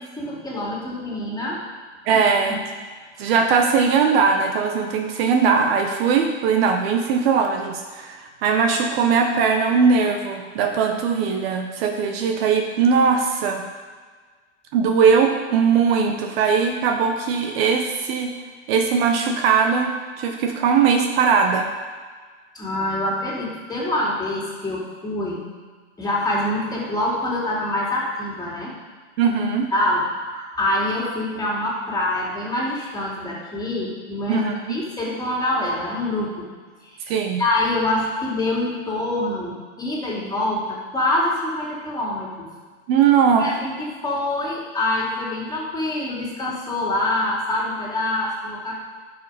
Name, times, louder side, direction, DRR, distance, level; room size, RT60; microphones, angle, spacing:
voice 1, 0.2-1.6 2.1-2.2 2.5-2.6 22.5-25.4 26.0-28.7 29.7-30.0 30.3-34.4 34.7-36.5 36.8-37.0 37.4-42.5 43.4-43.7 44.0-48.8, left 1 dB, 10° left, -5 dB, 2.8 m, -25 dB
voice 2, 2.1-2.6 3.2-13.6 14.7-18.3 18.7-21.7 29.2-29.7 34.3-34.8 37.1-37.4 42.9-43.5, right 6 dB, 55° right, 4 dB, 1.2 m, -20 dB
11.0 x 6.0 x 5.1 m, 1.5 s
hypercardioid pair, 125°, 35 cm